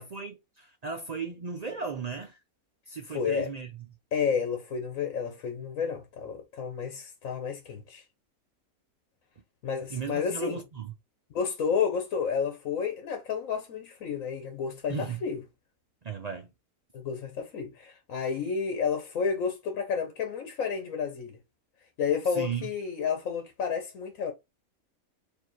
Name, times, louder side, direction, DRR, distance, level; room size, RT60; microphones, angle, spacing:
voice 1, 0.0-2.4 2.9-3.9 9.9-10.9 14.9-15.2 16.0-16.5 22.3-22.7, right 5 dB, 65° right, 0.4 m, -36 dB
voice 2, 3.1-3.5 4.1-8.0 9.6-10.6 11.3-15.4 16.9-21.4 22.0-24.3, left 6 dB, 70° left, 1.2 m, -31 dB
4.5 x 2.8 x 3.0 m
omnidirectional pair, 1.5 m